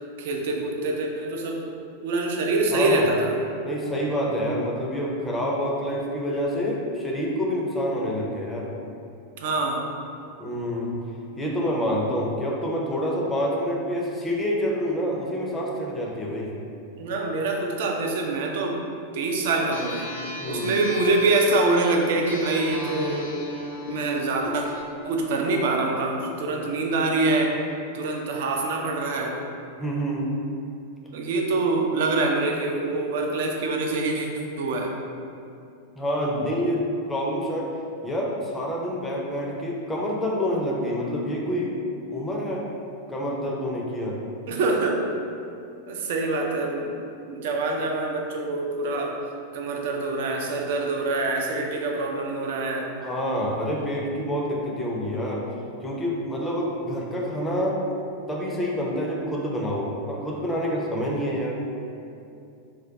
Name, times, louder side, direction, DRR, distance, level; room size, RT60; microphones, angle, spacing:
voice 1, 0.2-1.6 2.0-3.4 9.4-9.9 17.0-18.9 19.1-20.1 20.4-23.3 23.9-24.7 25.0-27.6 27.9-29.4 31.1-34.3 34.6-34.9 44.5-45.0 45.9-47.0 47.3-49.2 49.5-52.9, right 2 dB, 55° right, 1 dB, 0.4 m, -25 dB
voice 2, 2.7-3.1 3.6-8.7 10.4-11.0 11.4-16.6 20.4-20.7 29.8-30.3 35.9-37.7 38.0-41.8 42.1-42.7 43.1-44.2 53.0-55.5 55.8-57.8 58.3-61.6, equal, 10° left, -3 dB, 0.5 m, -27 dB
sound 1, 19.7-24.8, left 1 dB, 70° left, 0.5 m, -35 dB
2.2 x 2.2 x 3.9 m, 2.6 s
figure-of-eight pair, 90°, 0 cm